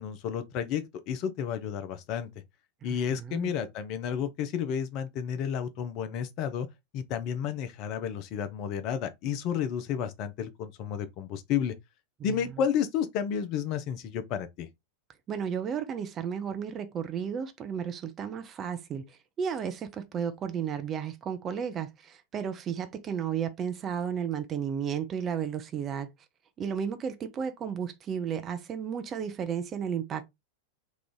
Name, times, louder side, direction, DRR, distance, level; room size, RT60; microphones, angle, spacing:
voice 1, 0.0-2.3 2.8-6.7 6.9-11.7 12.2-14.7, left 8 dB, 40° left, 0.5 m, -31 dB
voice 2, 2.9-3.5 12.2-12.4 15.3-26.1 26.6-30.2, right 7 dB, 25° right, 0.5 m, -33 dB
3.0 x 2.4 x 3.7 m
figure-of-eight pair, 90°, 0 cm